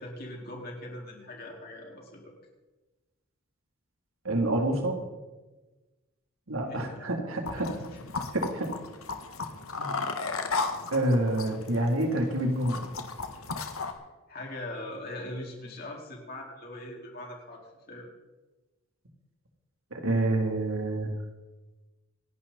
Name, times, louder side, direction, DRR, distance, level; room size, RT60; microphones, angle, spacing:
voice 1, 0.0-2.3 6.7-7.1 7.6-7.7 13.9-14.0 14.3-18.1, left 1 dB, 45° left, -2 dB, 4.5 m, -41 dB
voice 2, 4.2-5.0 6.5-7.7 8.3-8.7 9.8-9.9 10.9-12.8 19.9-21.1, right 1 dB, 85° right, 2 dB, 3.1 m, -27 dB
sound 1, 7.4-13.9, left 4 dB, 90° left, 1.7 m, -35 dB
27.5 x 11.5 x 4.2 m, 1.2 s
head